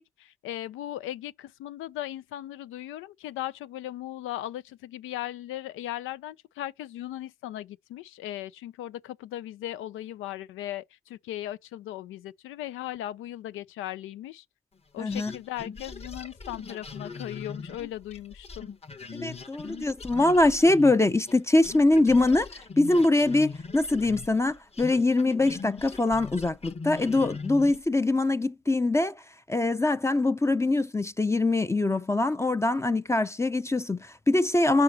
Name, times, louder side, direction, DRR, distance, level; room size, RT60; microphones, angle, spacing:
voice 1, 0.2-14.4 14.9-18.7, left 13 dB, 85° left, 0.5 m, -37 dB
voice 2, 15.0-15.3 19.1-29.1 29.5-34.8, left 2 dB, 15° left, 0.5 m, -23 dB
sound 1, 15.1-21.4 21.6-27.9, left 4 dB, 30° left, 1.1 m, -40 dB
8.0 x 5.0 x 2.8 m
cardioid pair, 90°, 20 cm